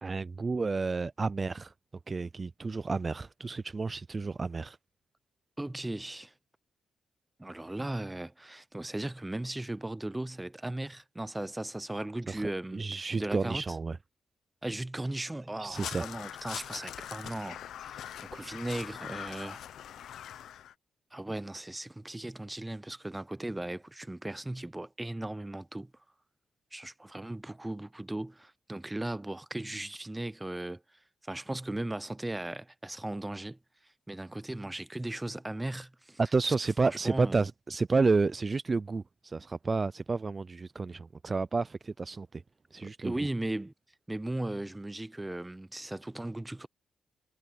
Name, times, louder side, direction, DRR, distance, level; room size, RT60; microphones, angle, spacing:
voice 1, 0.0-1.7 2.1-4.8 12.3-12.5 12.7-14.0 15.6-16.1 36.2-42.4 42.7-43.3, right 4 dB, 35° right, 0.4 m, -30 dB
voice 2, 5.6-6.3 7.4-13.8 14.6-19.6 19.9-20.1 21.1-25.9 26.7-30.8 31.3-33.6 34.1-36.2 36.5-36.6 36.8-37.4 42.8-43.7 44.1-46.7, right 1 dB, 15° right, 0.8 m, -37 dB
Crow, 15.7-20.7, left 10 dB, 85° left, 1.0 m, -42 dB
cardioid pair, 75°, 0 cm